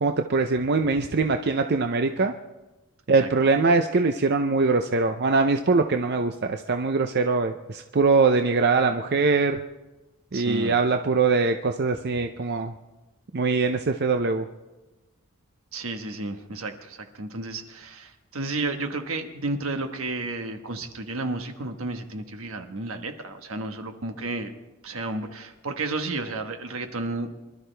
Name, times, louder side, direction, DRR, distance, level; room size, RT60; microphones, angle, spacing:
voice 1, 0.0-2.3 3.1-9.6 10.3-12.7 13.3-14.5, right 4 dB, 50° right, 6 dB, 0.6 m, -22 dB
voice 2, 10.3-10.8 15.7-24.5 24.8-27.3, right 2 dB, 75° right, 6 dB, 1.3 m, -32 dB
24.0 x 12.5 x 3.4 m, 1.1 s
head